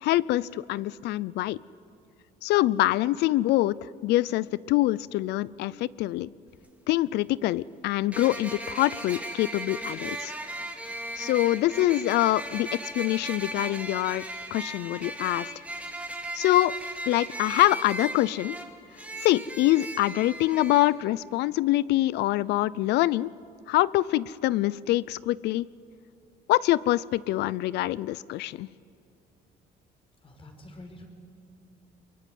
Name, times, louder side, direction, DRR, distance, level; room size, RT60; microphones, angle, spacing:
voice 1, 0.0-1.6 2.4-6.3 6.9-10.3 11.2-15.5 16.3-16.8 17.1-18.6 19.2-23.3 23.7-25.7 26.5-28.7, left 16 dB, 80° left, 21 dB, 0.6 m, -25 dB
sound 1, 6.5-6.6 8.1-20.9, right 1 dB, 10° right, 2.7 m, -37 dB
voice 2, 30.2-31.1, left 1 dB, 30° left, 4 dB, 4.6 m, -46 dB
23.0 x 23.0 x 9.4 m, 2.5 s
cardioid pair, 110°, 17 cm